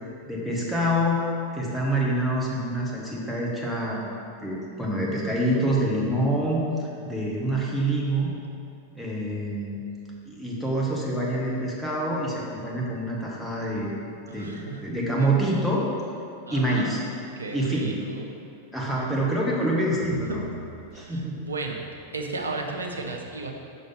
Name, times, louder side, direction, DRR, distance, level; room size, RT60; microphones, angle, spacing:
voice 1, 0.3-1.2 1.5-4.0 4.4-8.3 8.9-9.8 10.2-14.0 14.3-15.8 16.5-17.0 17.5-17.9 18.7-20.4 20.9-21.4, right 1 dB, ahead, -5 dB, 1.1 m, -26 dB
voice 2, 16.5-16.9 17.4-18.2 21.4-21.8 22.1-23.5, right 3 dB, 75° right, 2 dB, 0.6 m, -33 dB
5.3 x 5.1 x 4.0 m, 2.5 s
figure-of-eight pair, 90°, 0 cm